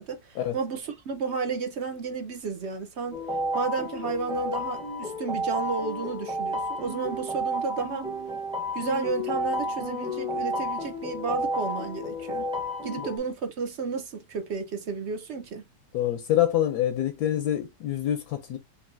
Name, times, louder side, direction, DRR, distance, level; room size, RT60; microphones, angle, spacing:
voice 1, 0.0-3.2 3.5-8.1 8.7-12.5 12.8-15.6, right 5 dB, 55° right, 0.8 m, -32 dB
sound 1, 3.1-13.2, equal, 5° right, 0.3 m, -31 dB
voice 2, 15.9-18.6, left 12 dB, 75° left, 1.1 m, -26 dB
5.3 x 2.7 x 2.5 m
omnidirectional pair, 1.8 m